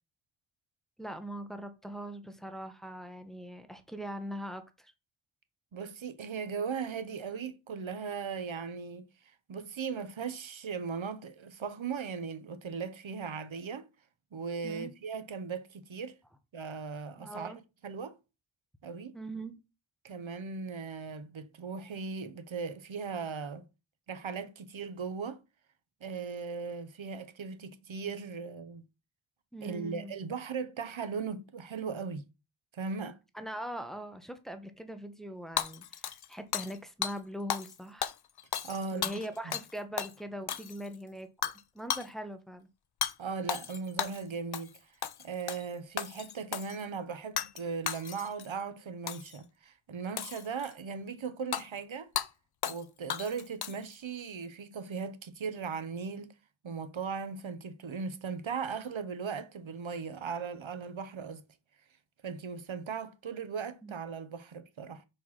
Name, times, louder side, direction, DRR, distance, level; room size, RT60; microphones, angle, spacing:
voice 1, 1.0-4.9 14.6-14.9 17.2-17.6 19.1-19.6 29.5-30.1 33.3-38.1 38.9-42.7 63.8-63.9, right 1 dB, ahead, 1.2 m, -41 dB
voice 2, 5.7-9.0 9.5-13.9 14.3-16.2 16.5-18.2 18.8-19.1 20.0-23.6 24.1-25.4 26.0-28.8 29.6-32.2 32.7-33.2 38.6-39.6 43.2-44.9 45.2-52.1 52.6-56.3 56.6-61.4 62.2-65.0, right 5 dB, 75° right, 0.9 m, -38 dB
Hammer / Shatter, 35.6-36.8 37.0-37.2 37.5-37.7 38.0-39.7 40.0-40.1 40.5-40.9 41.4-41.6 41.9-42.1 43.0-43.1 43.5-44.2 44.5-44.8 45.0-45.6 46.0-46.8 47.4-47.6 47.9-48.5 49.1-49.4 50.2-50.7 51.5-51.6 52.2-52.3 52.6-52.8 53.1-53.9, left 9 dB, 55° left, 0.6 m, -35 dB
5.8 x 5.1 x 5.7 m
wide cardioid pair, 65°, 47 cm